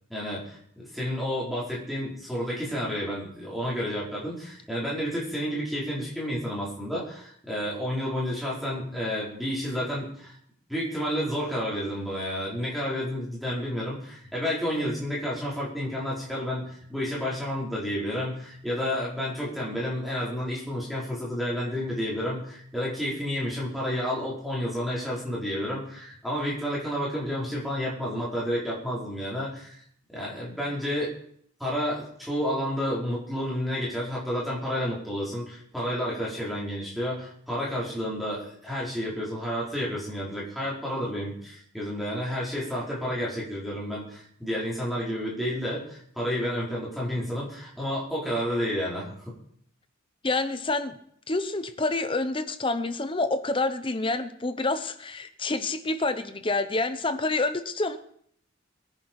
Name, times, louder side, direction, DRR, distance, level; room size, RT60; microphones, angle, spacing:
voice 1, 0.1-10.3 10.7-29.8 30.1-31.1 31.6-49.1, equal, ahead, -6 dB, 5.0 m, -30 dB
voice 2, 50.2-51.0 51.3-58.0, left 2 dB, 25° left, 11 dB, 0.9 m, -28 dB
22.5 x 10.0 x 4.8 m, 0.66 s
head